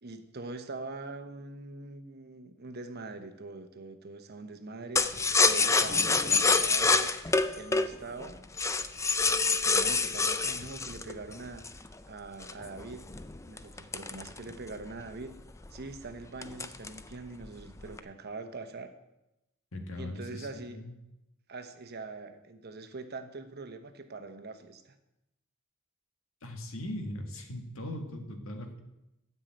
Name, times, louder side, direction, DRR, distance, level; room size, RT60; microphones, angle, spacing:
voice 1, 0.0-7.1 7.5-8.4 9.2-13.0 13.4-15.4 15.7-18.9 20.0-20.8 21.5-24.9, right 3 dB, 50° right, 8 dB, 1.0 m, -43 dB
sound 1, 5.0-11.9 12.4-14.9 15.2-15.3 15.6-16.0 16.4-17.1 17.4-18.0, left 4 dB, 15° left, 0.4 m, -26 dB
voice 2, 19.7-20.9 26.4-28.8, left 1 dB, 75° left, 4 dB, 1.8 m, -39 dB
12.5 x 5.6 x 8.9 m, 0.91 s
head